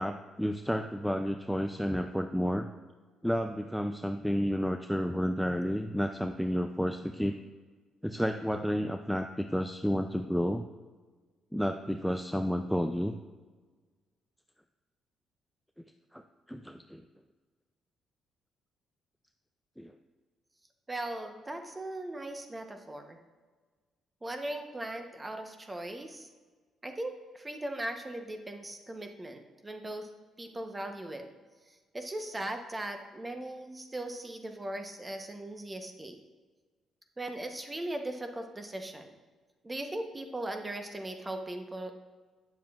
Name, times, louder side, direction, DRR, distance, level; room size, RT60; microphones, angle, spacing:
voice 1, 0.0-2.7 3.2-7.3 8.0-10.6 11.5-13.1 16.1-16.2 16.5-17.0 19.8-19.9, equal, ahead, 6 dB, 0.3 m, -31 dB
voice 2, 20.9-23.2 24.2-26.3 26.8-30.1 30.4-31.2 31.9-36.2 37.2-39.1 39.6-41.9, right 1 dB, 20° right, 5 dB, 0.9 m, -38 dB
9.2 x 7.2 x 2.4 m, 1.4 s
cardioid pair, 90°, 0 cm